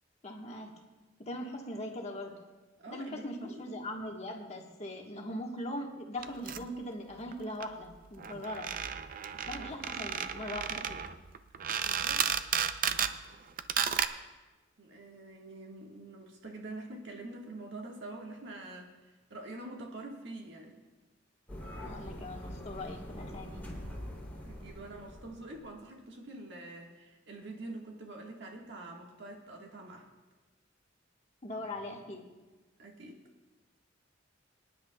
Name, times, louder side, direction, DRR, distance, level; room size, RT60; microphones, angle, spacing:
voice 1, 0.2-0.7 1.2-2.3 2.9-8.7 9.3-11.0 21.8-23.6 31.4-32.2, left 1 dB, 35° left, 1 dB, 1.4 m, -40 dB
voice 2, 2.8-3.7 9.5-9.8 11.8-12.3 14.8-20.8 24.4-30.1 32.8-33.2, right 2 dB, 65° right, 0 dB, 1.6 m, -46 dB
sound 1, 6.2-6.6 7.3-7.4 7.6-7.7 7.9-8.0 8.2-13.2 13.6-14.1, right 8 dB, 45° right, 0.5 m, -33 dB
sound 2, 21.5-25.7, equal, 10° left, 3.0 m, -44 dB
24.5 x 10.5 x 2.3 m, 1.2 s
head